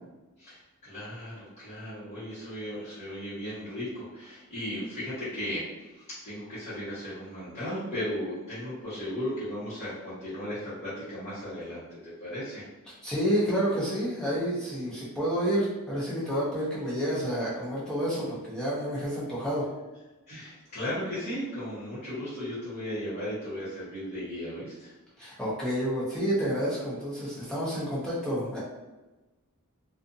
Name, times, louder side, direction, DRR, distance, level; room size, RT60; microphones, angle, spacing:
voice 1, 0.4-5.6 5.9-12.6 20.3-24.9, equal, 30° left, -14 dB, 1.1 m, -36 dB
voice 2, 13.0-19.7 25.2-28.6, equal, 5° left, -9 dB, 0.8 m, -29 dB
2.5 x 2.4 x 2.6 m, 1.1 s
head